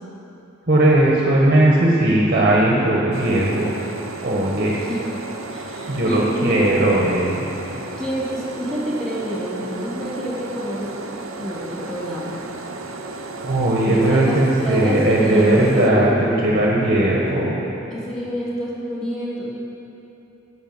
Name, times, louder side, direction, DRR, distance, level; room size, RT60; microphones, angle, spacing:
voice 1, 0.7-3.7 4.2-4.8 5.9-7.5 13.4-17.6, right 1 dB, 45° right, -4 dB, 1.5 m, -18 dB
sound 1, 3.1-15.9, right 3 dB, 90° right, 1.0 m, -34 dB
voice 2, 4.8-5.1 5.5-6.8 8.0-12.4 13.8-16.2 17.9-19.4, equal, 5° left, -10 dB, 3.3 m, -27 dB
11.5 x 8.0 x 7.9 m, 3.0 s
head